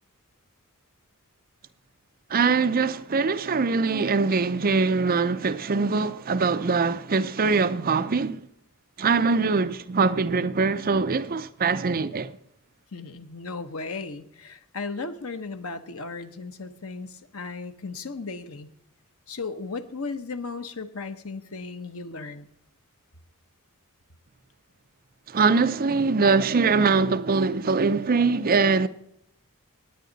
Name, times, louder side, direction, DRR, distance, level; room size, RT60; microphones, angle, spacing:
voice 1, 2.3-8.5 9.0-12.3 25.3-28.9, right 4 dB, 40° right, 0.5 m, -23 dB
voice 2, 12.9-18.7 19.3-22.5, left 4 dB, 70° left, 1.0 m, -36 dB
19.5 x 9.3 x 4.0 m
head